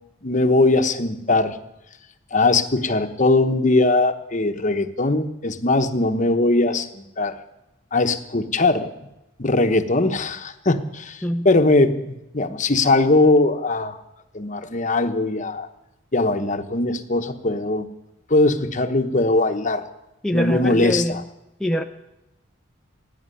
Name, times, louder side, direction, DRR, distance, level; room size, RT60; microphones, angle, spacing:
voice 1, 0.2-1.6 2.3-7.4 7.9-8.9 9.4-14.0 14.3-15.7 16.1-17.9 18.3-19.8 20.3-21.2, left 2 dB, 40° left, 8 dB, 1.0 m, -20 dB
voice 2, 20.2-21.2 21.6-21.8, equal, 5° left, 2 dB, 0.6 m, -23 dB
17.0 x 8.7 x 9.8 m, 0.92 s
head